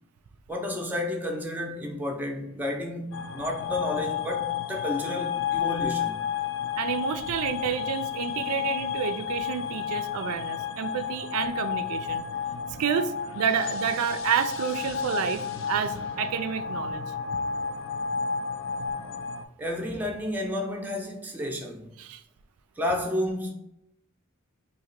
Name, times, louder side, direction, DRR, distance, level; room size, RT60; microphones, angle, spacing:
voice 1, 0.5-6.2 19.6-21.9 22.8-23.5, left 1 dB, 10° right, 0.4 m, -31 dB
sound 1, 3.1-19.4, left 7 dB, 60° left, 0.3 m, -31 dB
voice 2, 6.8-12.2 12.8-17.0 22.0-22.2, right 7 dB, 80° right, 0.3 m, -29 dB
2.8 x 2.8 x 4.3 m
head